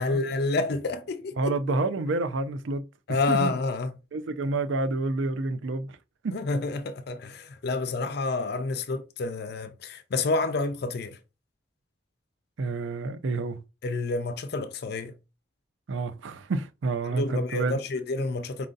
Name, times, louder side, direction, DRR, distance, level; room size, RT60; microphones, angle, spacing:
voice 1, 0.0-1.4 3.1-3.9 6.3-11.2 13.8-15.1 17.0-18.7, left 3 dB, 55° left, 0.4 m, -29 dB
voice 2, 1.4-3.6 4.1-6.0 6.2-6.4 12.6-13.6 15.9-17.8, right 3 dB, 80° right, 0.5 m, -29 dB
4.2 x 2.6 x 3.8 m
head